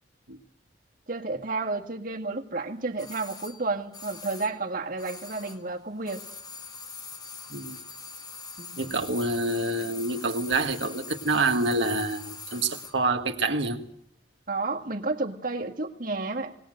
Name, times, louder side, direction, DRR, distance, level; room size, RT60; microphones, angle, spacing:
voice 1, 1.1-6.2 8.6-8.9 14.5-16.6, right 3 dB, 50° right, 2 dB, 2.0 m, -31 dB
sound 1, 3.0-5.7 6.0-13.0 13.3-13.4, left 4 dB, 25° left, 1.9 m, -43 dB
voice 2, 8.8-13.8, right 2 dB, 85° right, 4 dB, 1.8 m, -27 dB
20.5 x 19.5 x 7.8 m, 0.70 s
head